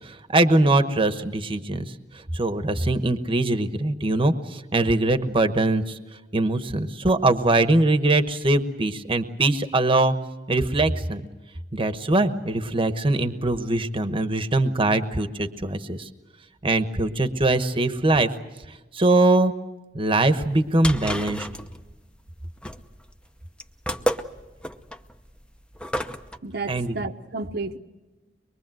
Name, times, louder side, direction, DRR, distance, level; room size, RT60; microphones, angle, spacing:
voice 1, 0.0-1.9 2.3-6.0 6.3-10.1 10.5-11.2 11.7-16.1 16.6-18.3 18.9-19.5 19.9-21.5 26.7-26.9, right 2 dB, 30° right, 9 dB, 1.1 m, -22 dB
sound 1, 20.5-26.4, equal, 5° left, 0.8 m, -31 dB
voice 2, 26.4-27.8, right 3 dB, 60° right, 4 dB, 0.9 m, -31 dB
24.0 x 22.5 x 7.7 m, 1.1 s
head